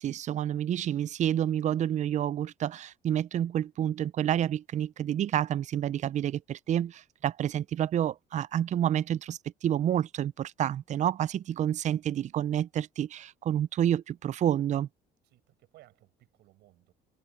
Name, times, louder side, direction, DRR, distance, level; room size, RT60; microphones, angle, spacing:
voice 1, 0.0-14.9, right 10 dB, 45° right, 0.4 m, -29 dB
voice 2, 15.2-16.9, right 16 dB, 80° right, 7.1 m, -60 dB
cardioid pair, 110°, 17 cm